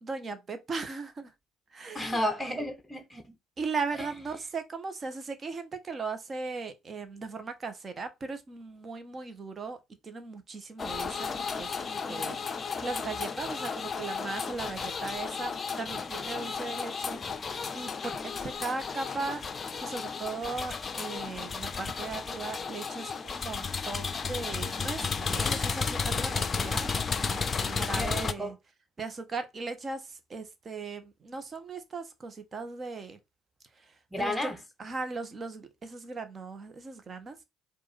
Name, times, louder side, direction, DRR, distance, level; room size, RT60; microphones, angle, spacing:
voice 1, 0.0-1.3 1.7-2.2 3.6-9.8 10.0-19.4 19.8-28.5 29.0-33.2 33.8-33.9 34.2-34.5 34.8-37.4, right 4 dB, 35° right, 1.1 m, -38 dB
voice 2, 1.9-3.3 4.0-4.1 12.1-12.4 27.9-28.5 34.1-34.6, left 1 dB, 5° left, 1.1 m, -33 dB
sound 1, 10.8-28.3, left 5 dB, 35° left, 0.5 m, -33 dB
4.7 x 2.6 x 4.2 m
hypercardioid pair, 55°, 0 cm